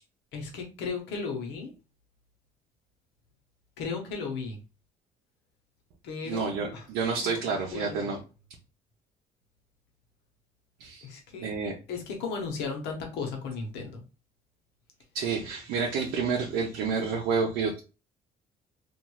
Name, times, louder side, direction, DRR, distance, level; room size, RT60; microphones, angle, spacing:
voice 1, 0.3-1.7 3.8-4.6 6.0-6.9 7.2-8.1 11.0-11.5 11.9-14.0, left 4 dB, 85° left, 3 dB, 0.9 m, -35 dB
voice 2, 6.2-8.2 10.8-11.0 11.4-11.7 15.1-17.8, right 5 dB, 85° right, -1 dB, 0.7 m, -29 dB
3.0 x 2.5 x 2.2 m, 0.31 s
cardioid pair, 110°, 17 cm